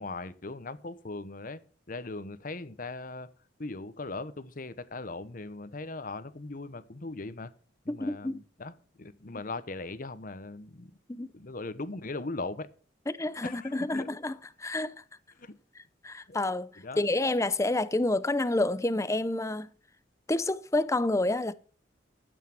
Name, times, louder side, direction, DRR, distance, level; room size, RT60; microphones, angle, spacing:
voice 1, 0.0-1.6 1.9-3.3 3.6-7.5 7.8-8.7 9.0-10.9 11.3-12.7 13.4-14.1 15.4-15.5 16.3-16.4 16.8-17.0, left 3 dB, 50° left, 1.0 m, -39 dB
voice 2, 7.9-8.4 11.1-11.3 13.1-14.3 14.6-14.9 16.0-16.7 17.0-19.7 20.3-21.5, left 2 dB, 15° left, 0.6 m, -28 dB
13.0 x 8.4 x 4.5 m
head